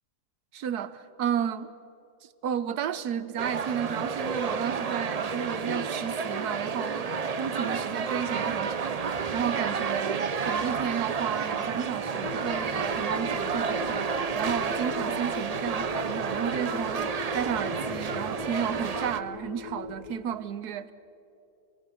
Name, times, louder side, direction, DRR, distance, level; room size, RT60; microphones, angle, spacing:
voice 1, 0.5-1.7 2.4-9.0 9.3-20.9, right 8 dB, 85° right, 1.4 m, -33 dB
sound 1, 3.4-19.2, right 5 dB, 60° right, 0.4 m, -30 dB
sound 2, 12.2-20.2, left 6 dB, 75° left, 1.5 m, -40 dB
27.5 x 18.5 x 6.3 m
omnidirectional pair, 1.6 m